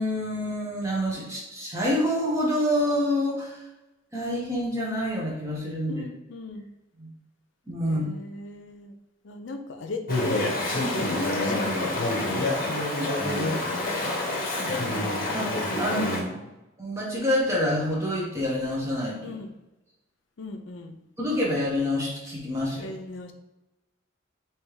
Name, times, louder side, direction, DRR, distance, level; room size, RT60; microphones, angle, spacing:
voice 1, 0.0-3.6 4.1-6.0 7.0-7.1 7.7-8.1 15.3-16.4 16.8-19.2 21.2-22.9, left 1 dB, 15° right, -5 dB, 1.1 m, -27 dB
voice 2, 5.9-6.7 7.8-8.9 9.2-16.6 19.2-19.5 20.4-21.0 22.8-23.3, left 2 dB, 65° left, 5 dB, 0.5 m, -38 dB
Chatter / Stream, 10.1-16.2, left 1 dB, 45° left, 0.9 m, -27 dB
3.3 x 3.0 x 4.7 m, 0.99 s
head